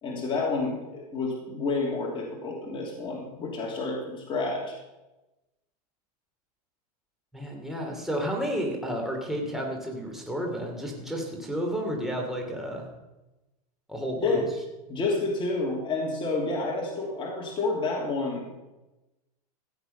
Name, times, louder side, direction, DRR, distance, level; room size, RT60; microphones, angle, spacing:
voice 1, 0.0-4.8 14.2-14.4 14.9-18.5, left 3 dB, 25° left, -2 dB, 3.0 m, -29 dB
voice 2, 7.3-12.9 13.9-14.4, equal, ahead, 0 dB, 2.9 m, -31 dB
16.0 x 8.2 x 5.6 m, 1.0 s
supercardioid pair, 135°, 20 cm